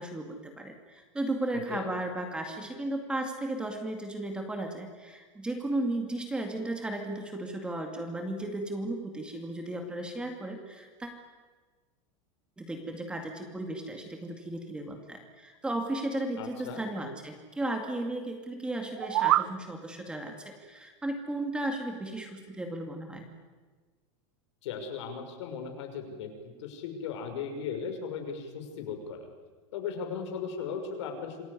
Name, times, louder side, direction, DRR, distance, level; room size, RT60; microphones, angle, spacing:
voice 1, 0.0-11.1 12.6-23.3, right 1 dB, 5° right, 4 dB, 2.2 m, -35 dB
voice 2, 16.4-16.8 24.6-29.3 29.7-31.4, left 6 dB, 65° left, 5 dB, 6.0 m, -37 dB
sound 1, 18.8-19.5, right 15 dB, 70° right, 0.8 m, -25 dB
27.0 x 20.5 x 9.8 m, 1.4 s
supercardioid pair, 170°, 16 cm